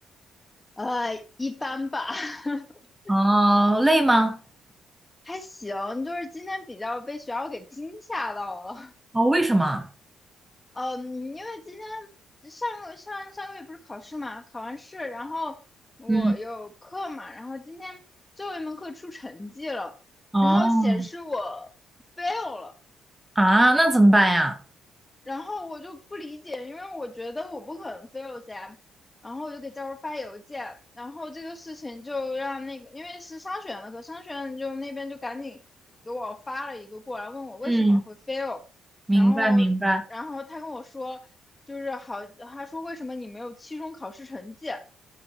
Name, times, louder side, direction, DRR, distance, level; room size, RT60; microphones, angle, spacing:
voice 1, 0.8-3.1 5.2-8.9 10.7-12.1 12.4-15.6 16.0-18.0 18.4-20.0 20.4-21.7 22.2-22.8 25.2-28.8 29.2-35.6 36.0-38.6 39.1-39.7 40.1-41.3 41.7-44.8, left 2 dB, 20° left, 1.4 m, -34 dB
voice 2, 3.1-4.4 9.1-9.9 16.1-16.3 20.3-21.0 23.4-24.6 37.6-38.0 39.1-40.0, right 1 dB, 10° right, 1.0 m, -19 dB
13.5 x 5.1 x 2.9 m
cardioid pair, 90°, 0 cm